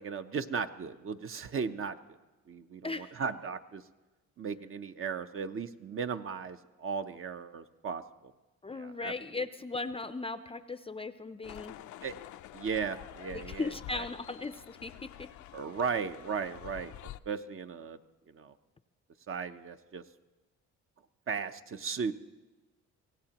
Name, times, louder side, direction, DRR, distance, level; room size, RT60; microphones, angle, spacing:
voice 1, 0.0-2.0 2.5-3.8 4.4-8.3 8.7-9.1 12.0-12.1 12.5-14.1 15.5-16.9 17.3-18.0 18.3-18.5 19.3-20.0 21.3-22.1, right 6 dB, 45° right, 9 dB, 0.7 m, -36 dB
voice 2, 2.8-3.3 8.6-11.8 13.3-15.3, left 3 dB, 20° left, 12 dB, 0.5 m, -38 dB
sound 1, 11.4-17.2, left 13 dB, 75° left, 0.5 m, -48 dB
24.5 x 17.0 x 2.9 m, 1.2 s
cardioid pair, 90°, 30 cm